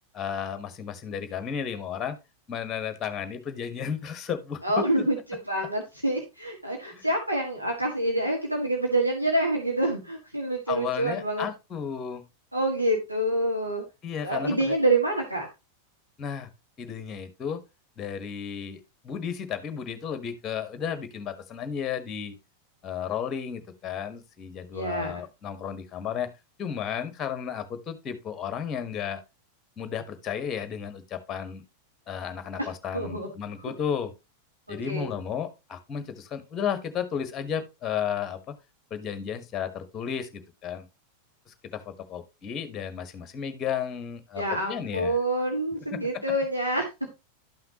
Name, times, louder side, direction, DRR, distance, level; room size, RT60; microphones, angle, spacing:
voice 1, 0.1-2.2 2.5-5.1 6.9-7.1 10.7-12.3 14.0-14.7 16.2-16.5 16.8-17.6 18.0-22.4 22.8-26.3 26.6-29.2 29.8-31.6 32.1-34.1 34.7-38.5 38.9-40.9 41.5-45.2 45.9-46.2, left 8 dB, 25° left, 10 dB, 1.3 m, -33 dB
voice 2, 4.6-11.5 12.5-13.8 14.2-15.5 24.7-25.2 32.6-32.7 32.9-33.3 33.6-33.7 34.7-35.2 44.4-46.8, right 1 dB, 90° right, 0 dB, 1.7 m, -27 dB
12.0 x 5.8 x 2.9 m, 0.25 s
figure-of-eight pair, 90°, 0 cm